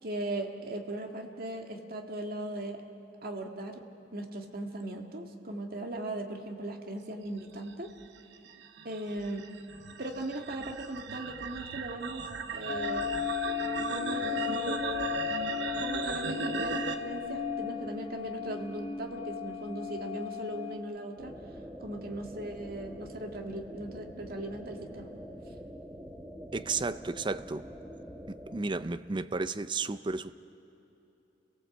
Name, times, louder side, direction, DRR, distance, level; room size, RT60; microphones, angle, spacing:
voice 1, 0.0-2.8 3.2-3.8 4.1-7.9 8.8-9.5 10.0-12.3 12.5-13.1 13.9-14.7 15.8-21.3 21.8-25.1, right 1 dB, 55° right, 3 dB, 2.0 m, -38 dB
sound 1, 7.7-17.0, right 5 dB, 80° right, 1.3 m, -37 dB
sound 2, 12.7-20.8, left 8 dB, 50° left, 1.9 m, -35 dB
sound 3, 21.2-28.6, equal, 5° right, 1.5 m, -45 dB
voice 2, 26.5-27.7 28.5-30.3, right 3 dB, 25° right, 13 dB, 0.5 m, -33 dB
29.5 x 18.0 x 8.0 m, 2.9 s
head